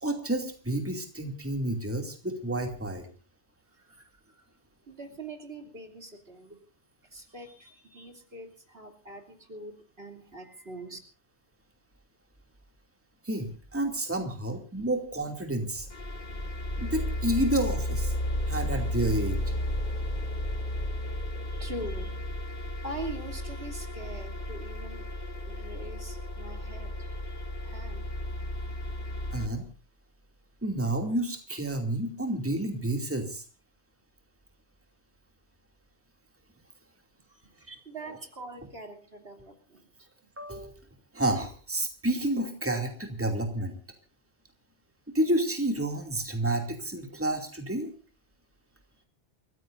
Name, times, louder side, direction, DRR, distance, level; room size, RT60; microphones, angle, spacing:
voice 1, 0.0-3.1 13.2-15.9 16.8-18.1 18.5-19.5 29.3-29.6 30.6-33.4 37.7-37.8 40.4-40.7 41.1-43.7 45.1-47.9, right 1 dB, 10° right, 4 dB, 2.6 m, -30 dB
voice 2, 3.7-4.5 4.9-6.6 7.1-11.0 21.4-22.1 22.4-28.0 37.3-40.1, right 1 dB, 55° right, 4 dB, 3.3 m, -43 dB
sound 1, 15.8-29.5, left 1 dB, 35° left, 2.7 m, -33 dB
sound 2, 20.9-29.1, right 3 dB, 80° left, 3.7 m, -54 dB
29.5 x 15.5 x 2.6 m, 0.37 s
omnidirectional pair, 1.2 m